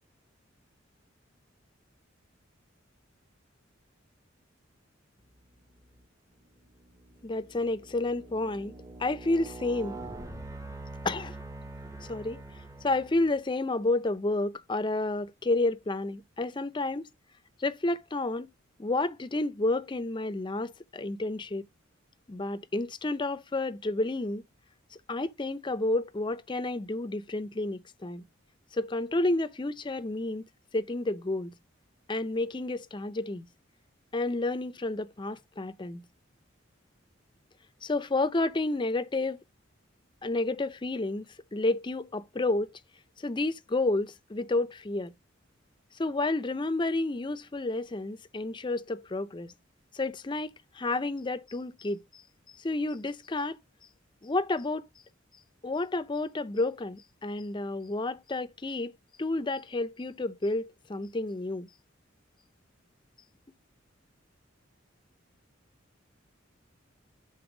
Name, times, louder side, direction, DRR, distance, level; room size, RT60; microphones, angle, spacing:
sound 1, 5.7-6.1 6.6-13.5, right 2 dB, 15° right, 0.8 m, -44 dB
voice 1, 7.2-10.0 11.0-11.4 12.1-12.4 12.8-17.1 17.6-18.5 18.8-21.7 22.3-24.4 25.1-28.2 28.7-30.4 30.7-31.5 32.1-33.5 34.1-36.0 37.8-39.4 40.2-42.7 43.2-45.1 45.9-49.5 49.9-52.2 52.5-53.6 54.2-54.9 55.6-61.7, left 2 dB, 25° left, 0.5 m, -30 dB
7.0 x 3.9 x 4.9 m
head